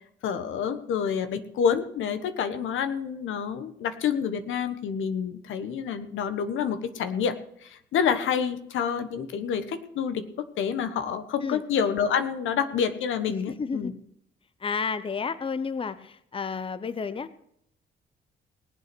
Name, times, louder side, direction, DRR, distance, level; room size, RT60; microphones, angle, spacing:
voice 1, 0.2-7.3 7.6-13.9, left 7 dB, 80° left, 10 dB, 1.4 m, -28 dB
voice 2, 13.5-13.9 14.6-17.3, left 5 dB, 25° left, 14 dB, 0.8 m, -31 dB
19.5 x 8.0 x 6.2 m, 0.74 s
cardioid pair, 90°, 20 cm